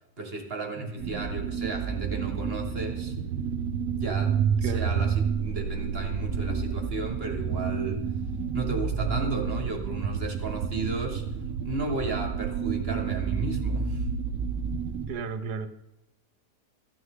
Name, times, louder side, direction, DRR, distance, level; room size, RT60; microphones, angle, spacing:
voice 1, 0.2-3.1 3.9-8.0 8.5-11.2 11.6-14.0, right 3 dB, 40° right, 3 dB, 1.6 m, -34 dB
voice 2, 0.8-1.1 4.6-4.9 15.1-15.7, right 5 dB, 80° right, 10 dB, 1.4 m, -34 dB
sound 1, 1.0-15.1, right 6 dB, 65° right, 1.1 m, -29 dB
14.0 x 9.7 x 3.7 m, 0.93 s
omnidirectional pair, 1.7 m